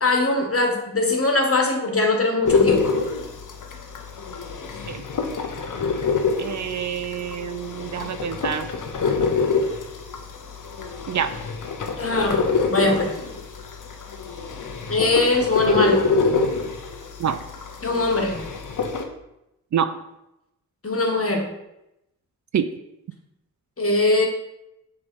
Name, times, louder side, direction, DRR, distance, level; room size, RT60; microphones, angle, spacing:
voice 1, 0.0-3.0 12.0-12.4 12.7-13.1 14.9-16.0 17.8-18.4 20.8-21.5 23.8-24.3, left 2 dB, 40° left, 2 dB, 1.8 m, -21 dB
sound 1, 2.5-19.0, left 4 dB, 60° left, 1.0 m, -26 dB
voice 2, 6.4-8.7 11.1-11.3 17.2-17.4 19.7-19.9 22.5-22.7, right 8 dB, 55° right, 10 dB, 0.5 m, -26 dB
6.7 x 3.4 x 5.5 m, 0.86 s
supercardioid pair, 45°, 35 cm